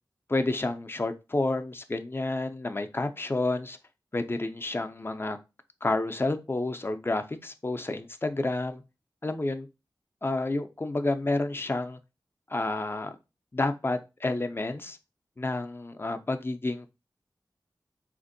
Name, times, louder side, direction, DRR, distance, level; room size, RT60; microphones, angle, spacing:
voice 1, 0.3-3.8 4.1-5.4 5.8-8.8 9.2-9.7 10.2-12.0 12.5-13.2 13.5-15.0 15.4-16.9, left 2 dB, 30° left, 0.4 m, -30 dB
3.4 x 2.5 x 2.6 m
cardioid pair, 45°, 8 cm